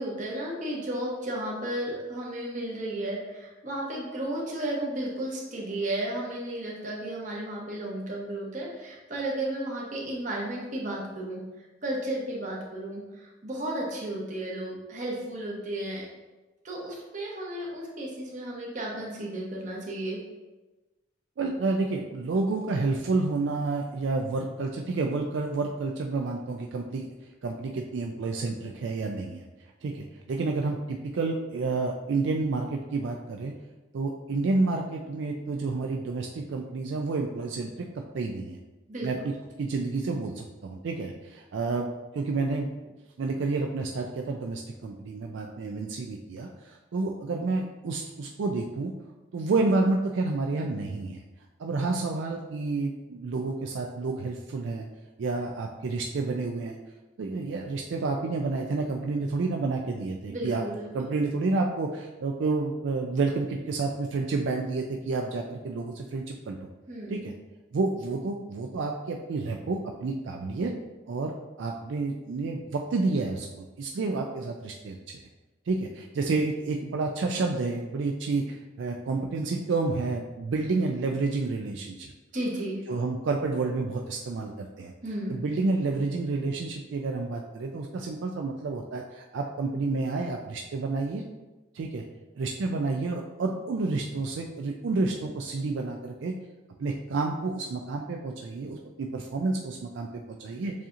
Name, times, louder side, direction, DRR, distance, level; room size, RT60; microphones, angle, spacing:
voice 1, 0.0-11.4 11.8-16.0 16.6-20.2 38.9-39.1 60.3-61.1 66.9-67.2 82.3-82.8 85.0-85.4, right 1 dB, 40° right, -3 dB, 1.0 m, -33 dB
voice 2, 21.4-27.1 27.4-29.4 29.8-33.5 33.9-37.7 38.1-38.6 39.0-39.3 39.6-41.9 42.1-42.7 43.2-48.9 49.3-51.2 51.6-54.9 55.2-56.8 57.2-60.6 60.9-66.7 67.1-67.3 67.7-70.7 71.1-75.0 75.7-82.1 82.9-84.5 84.8-84.9 85.3-91.2 91.7-92.0 92.4-96.3 96.8-100.7, right 3 dB, 70° right, 1 dB, 0.4 m, -29 dB
7.2 x 2.8 x 2.5 m, 1.1 s
head